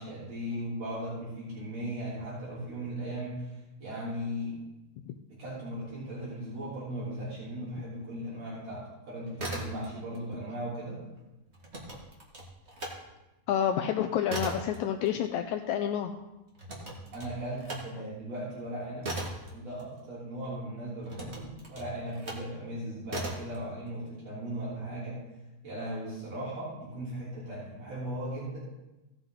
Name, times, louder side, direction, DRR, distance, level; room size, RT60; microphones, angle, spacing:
voice 1, 0.0-4.6 5.3-11.0 17.1-19.1 19.5-25.2 25.6-28.6, right 1 dB, 60° right, -8 dB, 4.6 m, -37 dB
sound 1, 9.2-10.2 10.5-13.0 13.4-20.4 21.0-22.5 23.1-23.6, right 2 dB, 25° right, 1.7 m, -39 dB
voice 2, 13.5-16.1, left 9 dB, 80° left, 5 dB, 1.9 m, -29 dB
16.5 x 7.4 x 3.9 m, 1.0 s
omnidirectional pair, 3.4 m